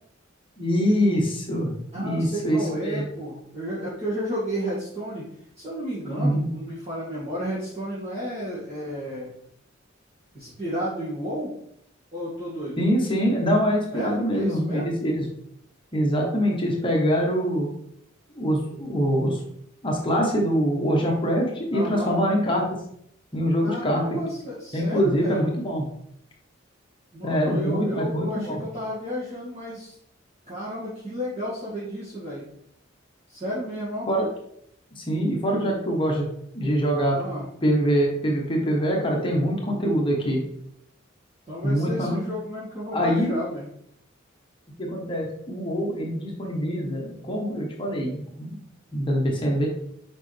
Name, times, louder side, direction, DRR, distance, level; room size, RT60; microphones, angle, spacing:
voice 1, 0.6-3.0 6.2-6.5 12.8-15.2 15.9-17.7 18.3-19.4 19.8-22.6 23.3-24.2 24.7-25.8 27.2-28.6 34.1-34.3 35.0-36.3 36.5-37.2 37.6-40.4 41.6-42.2 42.9-43.4 44.8-48.6 48.9-49.7, equal, 25° left, -1 dB, 1.2 m, -24 dB
voice 2, 1.9-5.3 5.6-9.3 10.3-11.5 12.1-12.8 13.9-14.9 21.7-22.2 23.6-25.5 27.1-30.0 30.5-32.5 33.3-34.1 35.5-35.7 37.2-37.4 41.5-43.7, equal, 30° right, -10 dB, 2.1 m, -32 dB
6.5 x 5.1 x 3.4 m, 0.72 s
head